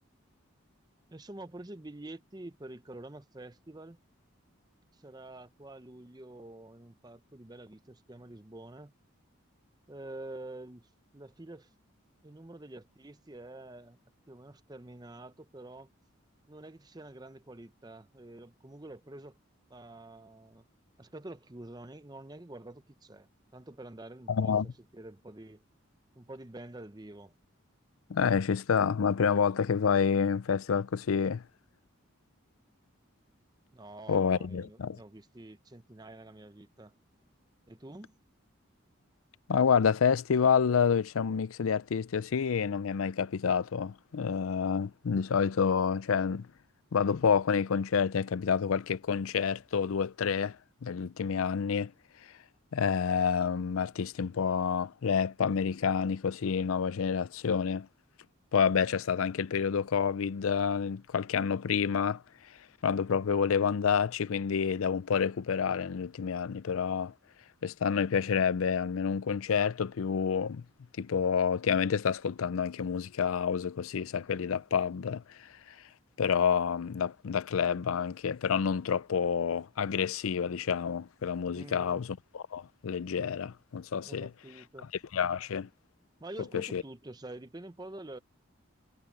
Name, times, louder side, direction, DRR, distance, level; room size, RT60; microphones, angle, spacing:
voice 1, 1.1-4.0 4.9-8.9 9.9-11.7 12.2-14.0 14.3-15.9 16.5-19.4 19.7-20.7 21.0-25.6 26.2-27.3 33.7-36.9 37.7-38.2 81.5-82.0 84.0-84.9 86.2-88.2, right 1 dB, 20° right, 0.7 m, -47 dB
voice 2, 24.3-24.7 28.1-31.4 34.1-35.0 39.5-46.5 46.9-51.9 52.2-52.3 52.7-57.9 58.5-62.2 62.8-67.1 67.6-70.6 71.0-75.8 76.2-84.3 85.1-85.7 86.5-86.8, left 6 dB, 85° left, 0.5 m, -28 dB
head